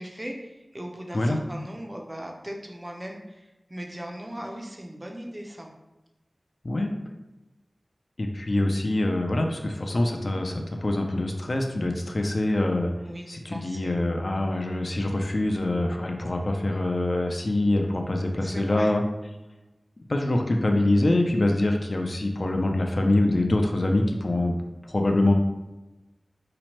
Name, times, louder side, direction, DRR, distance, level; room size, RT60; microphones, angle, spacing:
voice 1, 0.0-5.7 13.0-14.0 18.4-18.9, equal, 25° right, 1 dB, 0.4 m, -39 dB
voice 2, 8.2-12.9 13.3-19.0 20.1-24.5 24.9-25.3, left 1 dB, 55° left, 3 dB, 0.3 m, -24 dB
2.9 x 2.1 x 2.9 m, 1.0 s
wide cardioid pair, 65°, 0 cm